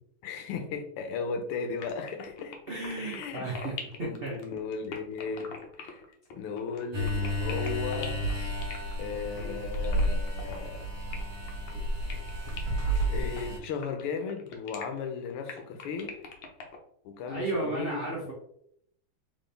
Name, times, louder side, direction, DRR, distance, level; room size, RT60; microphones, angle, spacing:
voice 1, 0.2-2.5 3.0-3.4 4.0-5.5 5.8-6.0 6.3-8.2 9.0-10.8 13.1-16.2 17.0-18.2, left 5 dB, 90° left, 6 dB, 1.7 m, -36 dB
sound 1, 1.8-16.8, left 5 dB, 70° left, 1.5 m, -43 dB
voice 2, 2.7-4.4 9.3-9.6 13.5-13.6 17.3-18.3, right 2 dB, 70° right, -3 dB, 0.5 m, -34 dB
sound 2, 6.9-13.6, equal, 55° right, 1.8 m, -31 dB
4.2 x 3.8 x 3.3 m, 0.71 s
omnidirectional pair, 2.4 m